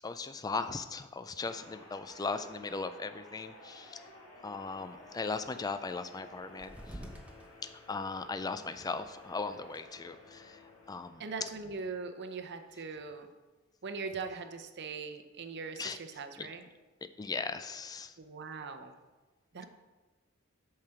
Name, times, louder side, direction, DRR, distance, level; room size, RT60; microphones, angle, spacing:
voice 1, 0.0-4.0 4.4-7.0 7.6-10.6 10.9-11.2 15.8-16.0 16.4-16.5 17.2-18.1, left 4 dB, 20° left, 11 dB, 0.3 m, -38 dB
sound 1, 1.4-11.7, left 1 dB, 90° left, 1.8 m, -54 dB
sound 2, 4.6-9.8, equal, 5° right, 0.9 m, -53 dB
voice 2, 11.2-13.3 13.8-16.6 18.2-18.9 19.5-19.7, right 4 dB, 55° right, 7 dB, 0.7 m, -41 dB
7.1 x 6.7 x 4.5 m, 1.2 s
head